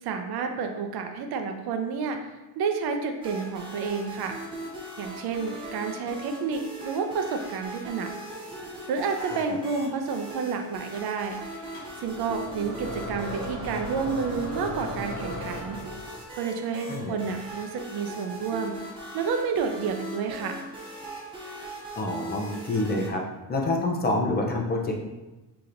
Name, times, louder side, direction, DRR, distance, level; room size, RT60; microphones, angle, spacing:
voice 1, 0.0-2.3 2.6-4.4 5.0-8.1 8.9-11.4 12.0-15.8 16.3-18.8 19.1-20.6, right 5 dB, 70° right, 5 dB, 0.6 m, -30 dB
sound 1, 3.2-23.1, right 1 dB, 15° right, 0.8 m, -40 dB
sound 2, 11.7-16.2, equal, 40° left, 1.1 m, -37 dB
voice 2, 22.0-23.2 23.5-24.9, left 2 dB, 25° left, 1 dB, 0.5 m, -27 dB
6.6 x 2.9 x 2.5 m, 1.1 s
cardioid pair, 170°, 40 cm